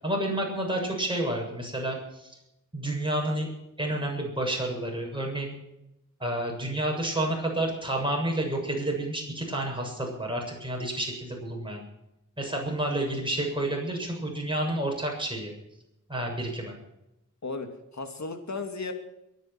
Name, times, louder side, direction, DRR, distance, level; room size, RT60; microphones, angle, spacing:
voice 1, 0.0-2.4 2.7-3.5 3.8-5.5 6.2-11.8 12.4-15.5 16.1-16.7, right 1 dB, 15° right, -1 dB, 7.3 m, -30 dB
voice 2, 17.4-18.9, left 3 dB, 60° left, 6 dB, 2.6 m, -35 dB
23.0 x 10.5 x 6.1 m, 0.88 s
wide cardioid pair, 90°, 32 cm